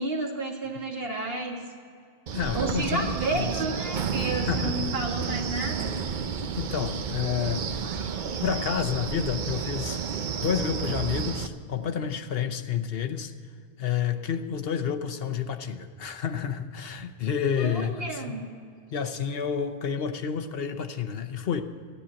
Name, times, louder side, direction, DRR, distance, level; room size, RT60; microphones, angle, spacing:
voice 1, 0.0-1.6 2.5-5.9 17.6-18.4, right 2 dB, 70° right, 0 dB, 2.2 m, -31 dB
voice 2, 2.3-3.5 4.5-4.7 6.5-8.0 8.4-10.0 10.4-13.3 13.8-18.3 18.9-21.6, left 7 dB, 70° left, 7 dB, 1.0 m, -29 dB
Wind, 2.3-11.5, right 6 dB, 55° right, 0.7 m, -31 dB
14.5 x 10.0 x 7.6 m, 2.2 s
omnidirectional pair, 1.0 m